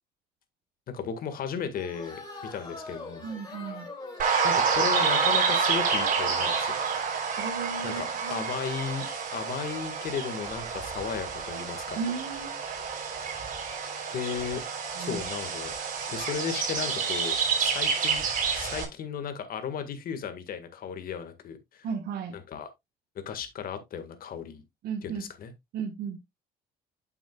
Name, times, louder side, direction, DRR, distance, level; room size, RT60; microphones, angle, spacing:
voice 1, 0.9-2.2 2.5-3.3 4.4-6.8 7.8-9.1 9.3-12.0 14.1-14.6 15.0-15.7 16.1-18.2 18.5-21.9 22.3-22.7 23.1-24.6 25.0-25.5, left 7 dB, 60° left, 1.8 m, -35 dB
sound 1, 1.7-6.6, left 3 dB, 25° left, 4.1 m, -44 dB
voice 2, 3.2-3.9 7.4-8.4 12.0-12.5 15.0-15.2 21.8-22.3 24.8-25.2 25.7-26.2, right 6 dB, 70° right, 1.4 m, -34 dB
sound 2, 4.2-18.8, right 5 dB, 55° right, 3.4 m, -29 dB
9.1 x 7.1 x 2.4 m
cardioid pair, 110°, 17 cm